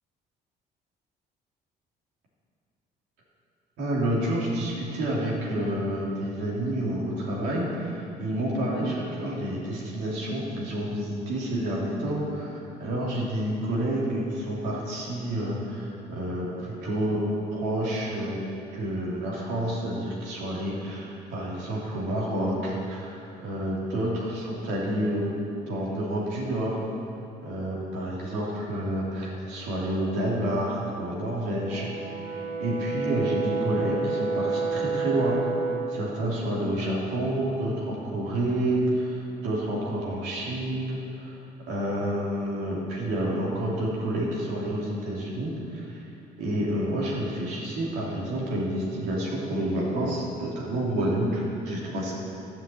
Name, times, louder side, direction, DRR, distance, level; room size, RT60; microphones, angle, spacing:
voice 1, 3.8-17.2 17.5-18.4 18.7-25.4 25.7-26.8 27.4-31.9 32.6-35.3 35.9-41.3 41.7-46.0 46.4-52.2, right 1 dB, 90° right, -5 dB, 3.4 m, -29 dB
Brass instrument, 31.7-35.9, right 4 dB, 40° right, 2.2 m, -29 dB
12.0 x 7.3 x 7.9 m, 2.8 s
cardioid pair, 110°, 17 cm